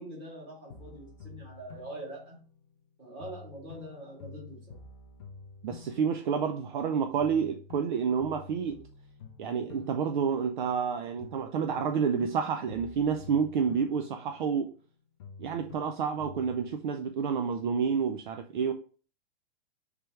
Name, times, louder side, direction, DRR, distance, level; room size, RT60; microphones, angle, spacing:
voice 1, 0.0-2.4 3.0-4.8, right 1 dB, 15° right, 1.7 m, -44 dB
sound 1, 0.7-2.8 3.2-6.9 7.2-10.9 11.2-14.9 15.2-16.8, left 5 dB, 25° left, 0.4 m, -49 dB
voice 2, 5.6-8.8 9.4-14.7 15.4-18.7, right 6 dB, 55° right, 0.4 m, -29 dB
3.4 x 3.2 x 4.5 m
hypercardioid pair, 170°, 30 cm